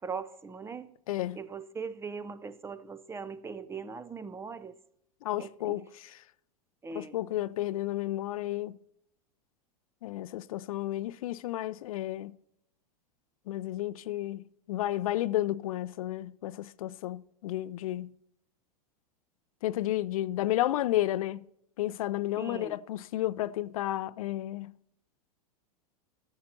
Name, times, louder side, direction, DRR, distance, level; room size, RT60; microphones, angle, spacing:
voice 1, 0.0-0.9 1.4-4.8 5.4-5.8 6.8-7.2 22.4-22.8, right 5 dB, 15° right, 0.5 m, -40 dB
voice 2, 1.1-1.4 5.2-6.2 7.0-8.8 10.0-12.3 13.5-18.1 19.6-21.4 21.8-24.7, left 14 dB, 65° left, 0.5 m, -32 dB
13.5 x 7.4 x 4.2 m
hypercardioid pair, 95°, 20 cm